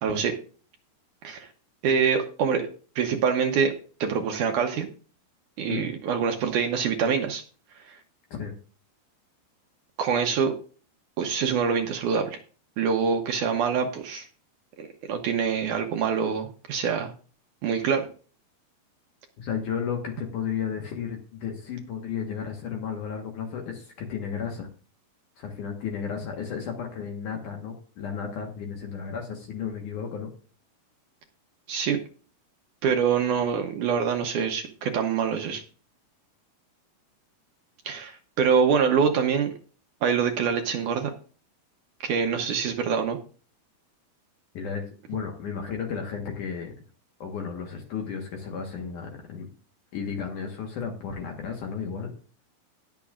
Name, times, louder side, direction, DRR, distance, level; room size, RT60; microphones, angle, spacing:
voice 1, 0.0-0.3 1.2-1.5 1.8-2.7 3.0-3.7 4.0-4.9 5.6-7.4 7.9-8.0 10.0-10.5 11.2-12.4 12.8-14.3 14.8-17.1 17.6-18.1 31.7-32.0 32.8-35.6 37.9-39.5 40.0-41.1 42.0-43.2, right 6 dB, 70° right, 4 dB, 1.9 m, -25 dB
voice 2, 19.4-24.7 25.4-30.3 44.5-46.7 47.2-49.5 49.9-52.1, left 7 dB, 60° left, 2 dB, 2.5 m, -33 dB
20.0 x 7.1 x 2.5 m, 0.39 s
omnidirectional pair, 4.6 m